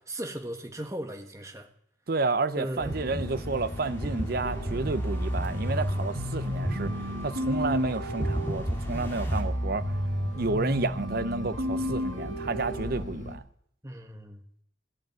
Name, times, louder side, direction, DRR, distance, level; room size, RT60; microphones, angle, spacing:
voice 1, 0.1-1.7 2.6-2.9 13.8-14.4, right 1 dB, 15° right, 1.4 m, -37 dB
voice 2, 2.1-9.9 10.3-13.4, right 3 dB, 50° right, 0.6 m, -31 dB
sound 1, 2.8-13.4, left 1 dB, 60° left, 2.7 m, -40 dB
sound 2, 2.8-9.4, right 1 dB, 10° left, 2.3 m, -35 dB
sound 3, 4.4-13.0, equal, 70° right, 1.9 m, -32 dB
16.0 x 8.7 x 9.0 m
head